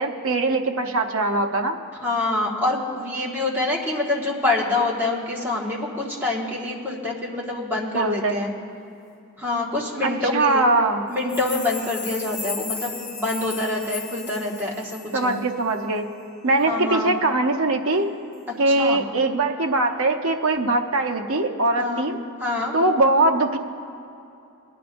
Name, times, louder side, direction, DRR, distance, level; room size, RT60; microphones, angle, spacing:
voice 1, 0.0-1.8 7.9-8.4 10.3-11.0 15.1-16.0 16.4-18.1 18.6-22.2 22.7-23.6, right 2 dB, 70° right, 4 dB, 0.8 m, -21 dB
voice 2, 2.0-8.5 9.4-10.7 11.1-15.4 16.6-17.1 18.6-19.0 21.8-22.1 22.4-22.7, left 2 dB, 10° right, -4 dB, 1.5 m, -26 dB
sound 1, 11.2-15.4 15.7-15.8, left 5 dB, 40° left, 1.1 m, -34 dB
20.5 x 11.0 x 2.6 m, 2.7 s
head